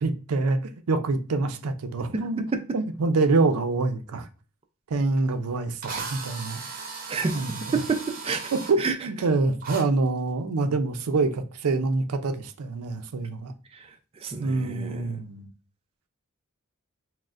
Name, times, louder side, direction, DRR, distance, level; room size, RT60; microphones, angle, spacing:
voice 1, 0.0-2.4 2.7-4.3 4.9-6.6 7.3-7.8 8.5-13.5 14.4-15.5, right 3 dB, 90° right, 0.5 m, -26 dB
Drill, 5.2-5.3 5.8-8.7 9.6-9.8, right 4 dB, 40° right, 0.7 m, -36 dB
voice 2, 7.1-8.5 8.8-9.0 13.7-15.1, right 4 dB, 25° right, 0.3 m, -29 dB
6.2 x 2.1 x 2.4 m
head